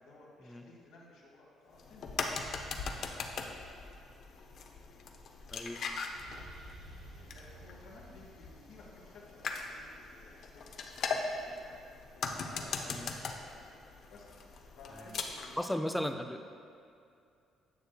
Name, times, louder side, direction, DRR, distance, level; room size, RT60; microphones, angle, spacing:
voice 1, 0.0-2.2 7.1-11.8 12.1-13.7 14.1-15.9, left 2 dB, 85° left, -4 dB, 1.6 m, -55 dB
sound 1, 1.7-15.6, left 4 dB, 60° left, 0.6 m, -40 dB
voice 2, 5.5-5.8 12.9-13.1 14.9-15.2 15.6-16.5, equal, 5° left, 7 dB, 0.4 m, -36 dB
sound 2, 6.1-9.9, right 2 dB, 85° right, 1.2 m, -54 dB
9.5 x 6.4 x 2.3 m, 2.5 s
cardioid pair, 85°, 0 cm